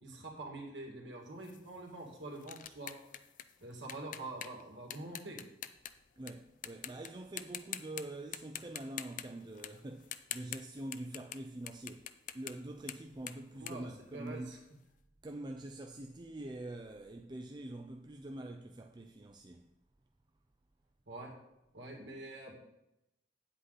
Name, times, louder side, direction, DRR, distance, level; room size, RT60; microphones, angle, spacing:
voice 1, 0.0-2.9 3.6-5.4 13.5-13.9 14.1-14.6 21.1-21.3 21.7-22.6, right 2 dB, 85° right, 2.5 m, -45 dB
sound 1, 1.4-6.3 6.6-7.1 7.4-8.0 8.3-11.4 11.7-14.7, left 11 dB, 45° left, 0.5 m, -45 dB
voice 2, 6.2-14.6 15.2-19.7, right 1 dB, 25° right, 0.5 m, -45 dB
9.6 x 8.0 x 4.1 m
head